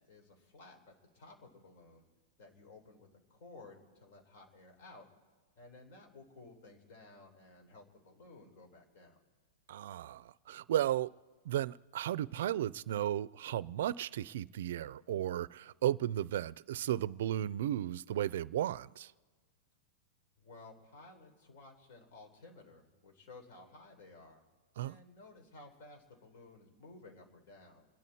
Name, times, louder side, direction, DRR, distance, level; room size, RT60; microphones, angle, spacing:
voice 1, 0.0-2.0 2.4-5.1 5.6-9.2 20.4-24.4 24.8-27.9, left 2 dB, 50° left, 3.9 m, -56 dB
voice 2, 9.7-11.1 11.4-19.1 24.8-25.0, right 12 dB, 65° right, 0.5 m, -34 dB
28.5 x 11.0 x 4.3 m
supercardioid pair, 170°, 0 cm